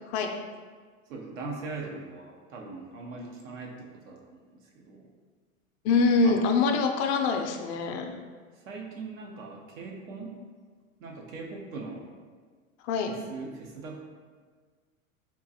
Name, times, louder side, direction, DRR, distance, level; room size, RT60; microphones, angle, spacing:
voice 1, 1.1-5.1 6.2-6.4 8.5-10.4 11.0-12.2 13.1-14.0, right 3 dB, 75° right, 0 dB, 0.8 m, -41 dB
voice 2, 5.8-8.2 12.8-13.1, left 4 dB, 55° left, 4 dB, 0.5 m, -24 dB
3.6 x 2.5 x 2.7 m, 1.5 s
hypercardioid pair, 90°, 40 cm